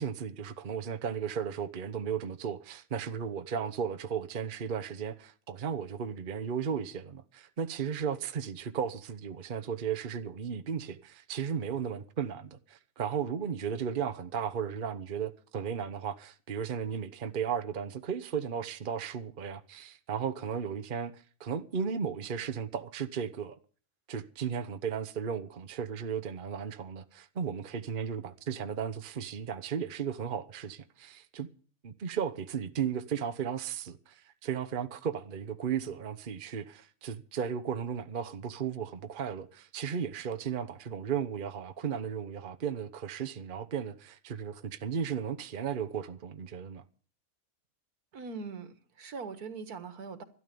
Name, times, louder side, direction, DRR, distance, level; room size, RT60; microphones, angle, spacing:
voice 1, 0.0-23.6 24.1-31.5 31.8-46.8, right 7 dB, 40° right, 1.0 m, -35 dB
voice 2, 48.1-50.2, right 4 dB, 85° right, 2.0 m, -41 dB
13.0 x 12.5 x 6.8 m
omnidirectional pair, 1.6 m